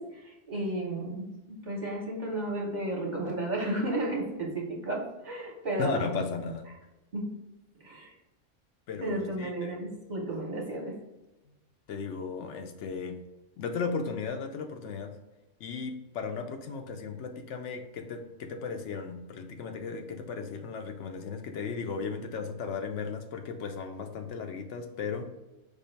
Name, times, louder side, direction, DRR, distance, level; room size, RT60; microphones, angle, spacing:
voice 1, 0.0-6.1 7.1-7.3 7.8-8.1 9.0-11.0, right 1 dB, 40° right, -2 dB, 0.9 m, -33 dB
voice 2, 5.8-6.7 8.9-9.9 11.5-11.6 11.9-13.2 13.6-15.2 15.6-25.3, left 5 dB, 75° left, 5 dB, 0.9 m, -36 dB
5.1 x 2.3 x 4.3 m, 0.99 s
omnidirectional pair, 1.3 m